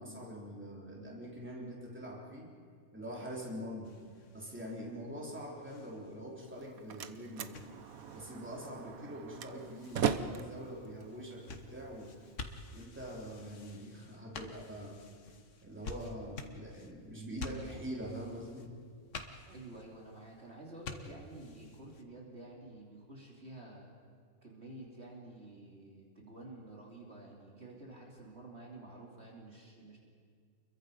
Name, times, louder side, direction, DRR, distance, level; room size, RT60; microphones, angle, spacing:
voice 1, 0.0-2.5 2.9-4.0 4.3-7.6 8.1-12.1 12.7-14.9 15.6-18.7, equal, 10° right, -3 dB, 3.7 m, -44 dB
sound 1, 3.8-22.0, left 3 dB, 60° left, 1.6 m, -50 dB
Slam, 6.4-12.4, right 7 dB, 85° right, 1.3 m, -39 dB
voice 2, 19.4-23.9 24.4-30.0, right 2 dB, 50° right, -2 dB, 3.2 m, -50 dB
29.0 x 22.5 x 5.4 m, 2.1 s
omnidirectional pair, 1.4 m